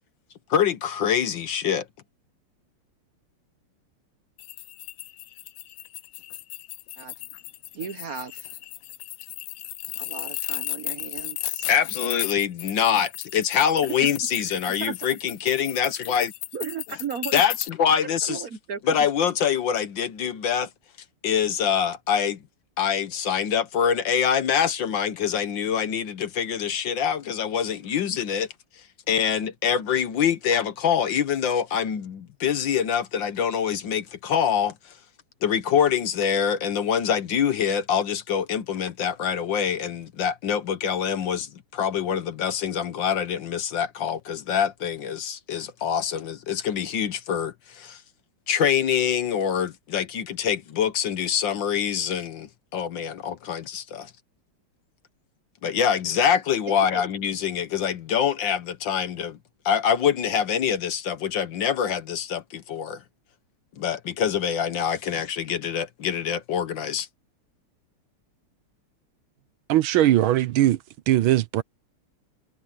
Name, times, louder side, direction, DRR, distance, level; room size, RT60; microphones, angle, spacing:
voice 1, 0.5-1.8 11.7-16.3 17.3-18.4 18.9-20.7 21.2-22.4 22.8-28.5 29.1-34.7 35.4-48.0 48.5-54.1 55.6-59.4 59.6-63.0 63.8-67.1, left 8 dB, 65° left, 1.6 m, -25 dB
sound 1, 4.4-17.7, left 15 dB, 85° left, 1.6 m, -35 dB
voice 2, 7.7-8.6 10.0-11.7 13.8-14.1 14.7-14.9 16.5-17.3 18.0-18.8 56.7-57.0, right 7 dB, 50° right, 1.2 m, -35 dB
voice 3, 69.7-70.8 71.1-71.6, right 13 dB, 75° right, 1.5 m, -20 dB
omnidirectional pair, 2.4 m